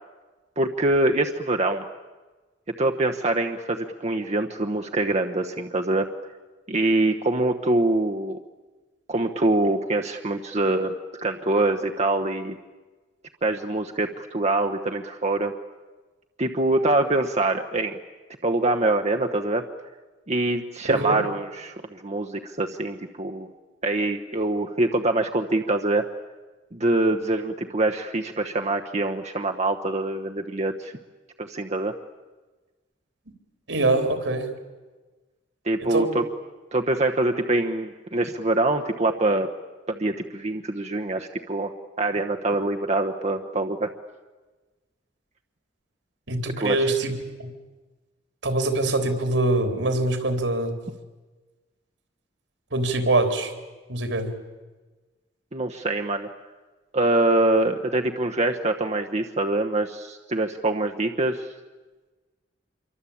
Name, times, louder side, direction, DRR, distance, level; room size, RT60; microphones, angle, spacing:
voice 1, 0.6-1.8 2.8-6.1 6.7-8.4 9.1-12.6 13.4-15.5 16.4-18.0 18.4-19.6 20.3-23.5 23.8-26.1 26.7-30.9 31.4-31.9 35.6-36.2 36.7-39.5 40.0-41.7 42.0-43.9 46.6-46.8 55.5-56.3 56.9-61.5, right 2 dB, 35° right, 4 dB, 1.1 m, -24 dB
voice 2, 20.9-21.2 33.7-34.5 35.8-36.2 46.3-47.1 47.4-47.5 48.4-50.7 52.7-53.5 53.9-54.3, right 2 dB, 75° right, 8 dB, 3.7 m, -24 dB
26.5 x 24.0 x 8.7 m, 1.3 s
head